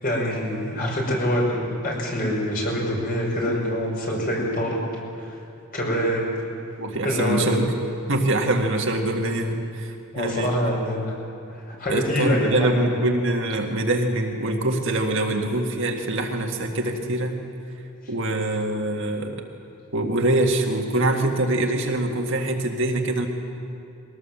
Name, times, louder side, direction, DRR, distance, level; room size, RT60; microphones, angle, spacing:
voice 1, 0.0-4.9 5.2-5.3 5.7-6.3 7.0-7.6 10.1-11.2 11.5-13.0, equal, 40° left, -2 dB, 5.3 m, -25 dB
voice 2, 6.8-7.7 8.1-10.5 11.9-17.4 18.1-19.4 19.9-23.3, right 1 dB, 55° right, 2 dB, 1.8 m, -24 dB
21.5 x 18.0 x 7.3 m, 2.6 s
head